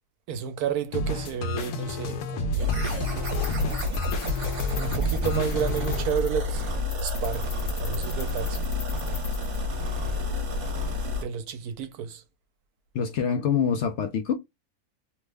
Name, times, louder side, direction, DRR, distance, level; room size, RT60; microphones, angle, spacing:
voice 1, 0.3-3.3 4.7-6.7 7.0-8.7 11.0-12.2, right 8 dB, 80° right, 1.1 m, -32 dB
sound 1, 0.9-6.0, left 1 dB, 85° left, 1.2 m, -31 dB
sound 2, 2.5-11.2, left 2 dB, 55° right, 1.2 m, -29 dB
sound 3, 2.8-10.1, left 2 dB, 45° left, 1.1 m, -42 dB
voice 2, 12.9-14.3, left 7 dB, 65° left, 0.7 m, -25 dB
3.0 x 2.1 x 3.3 m
omnidirectional pair, 1.6 m